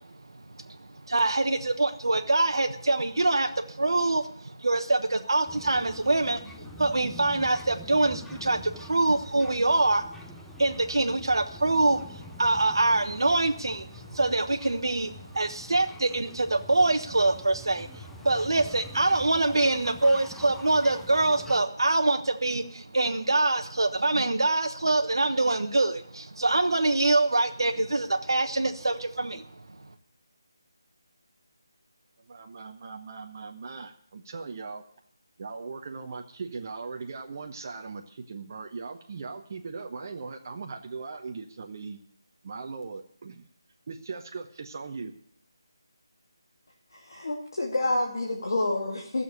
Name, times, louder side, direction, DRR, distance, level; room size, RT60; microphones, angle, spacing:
voice 1, 1.1-10.1 10.6-29.5, right 2 dB, 70° right, 6 dB, 1.2 m, -25 dB
sound 1, 5.5-21.6, left 2 dB, 5° left, 0.7 m, -46 dB
voice 2, 32.3-34.8 35.4-42.0 42.4-43.5 43.9-45.1, right 4 dB, 40° right, 3 dB, 1.2 m, -39 dB
voice 3, 46.9-49.2, left 2 dB, 60° left, -1 dB, 2.6 m, -28 dB
15.0 x 7.2 x 8.4 m, 0.65 s
figure-of-eight pair, 160°, 2 cm